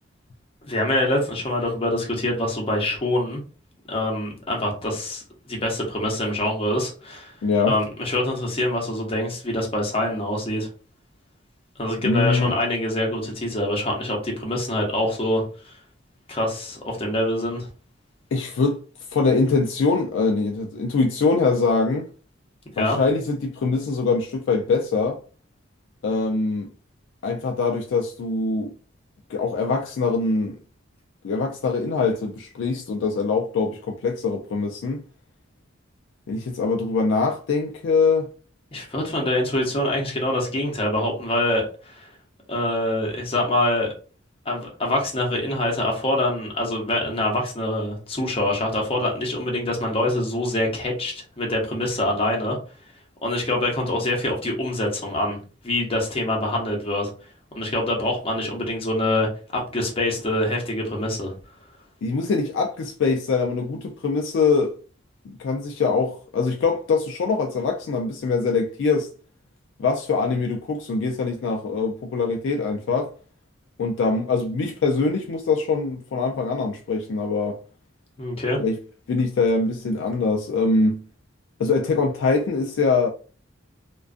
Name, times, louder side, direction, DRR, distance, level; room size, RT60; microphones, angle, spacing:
voice 1, 0.6-3.4 3.9-7.3 7.7-10.7 11.8-15.7 16.3-17.7 22.8-23.0 38.7-42.1 42.5-43.9 44.5-52.6 53.2-55.4 55.6-57.1 57.5-61.3 78.2-78.6, left 1 dB, 30° left, 0.7 m, -25 dB
voice 2, 7.4-7.8 12.0-12.5 18.3-18.8 19.1-22.1 22.8-25.2 26.0-26.7 27.2-28.7 29.3-30.6 31.2-35.0 36.3-38.3 62.0-64.8 65.3-69.1 69.8-73.1 73.8-77.6 78.6-78.8 79.1-81.0 81.6-83.1, left 4 dB, 65° left, 0.3 m, -23 dB
2.4 x 2.2 x 2.4 m
head